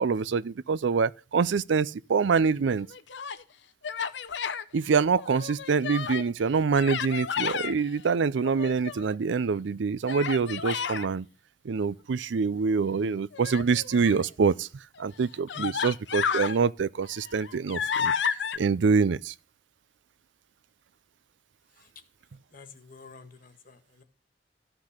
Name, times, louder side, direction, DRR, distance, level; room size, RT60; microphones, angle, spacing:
voice 1, 0.0-2.9 4.7-11.3 11.6-14.7 15.0-18.1 18.6-19.3, right 5 dB, 85° right, 0.5 m, -25 dB
Human voice, 2.8-3.4 3.8-4.6 5.2-6.3 6.7-7.7 8.4-9.2 10.1-11.1 13.3-14.2 15.0-15.1 15.5-16.6 17.1-18.6, left 7 dB, 75° left, 0.7 m, -31 dB
voice 2, 22.5-24.0, left 4 dB, 50° left, 1.5 m, -49 dB
13.5 x 6.0 x 6.5 m
head